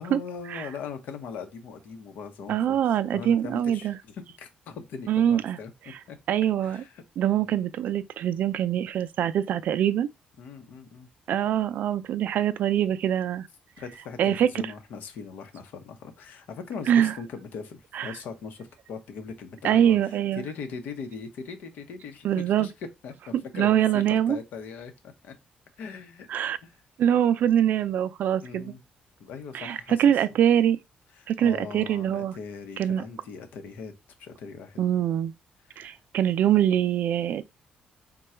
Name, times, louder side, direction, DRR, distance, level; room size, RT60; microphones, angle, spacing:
voice 1, 0.0-2.8 3.1-5.7 6.1-6.2 6.6-7.0 7.4-7.6 10.4-11.1 13.8-22.7 23.0-25.3 25.8-26.3 26.6-26.7 28.4-28.8 29.2-30.0 31.2-33.9 34.2-34.8 35.7-35.9, left 5 dB, 85° left, 0.9 m, -40 dB
voice 2, 2.5-4.0 5.1-5.6 6.3-6.8 7.2-10.1 11.3-13.5 14.2-14.5 16.9-17.1 17.9-18.1 19.6-20.5 22.2-22.7 23.5-24.4 26.3-26.6 27.0-28.7 29.5-30.8 31.3-32.4 32.8-33.0 34.8-35.3 35.8-37.4, right 10 dB, 70° right, 0.3 m, -24 dB
3.7 x 2.3 x 4.3 m
cardioid pair, 120°, 3 cm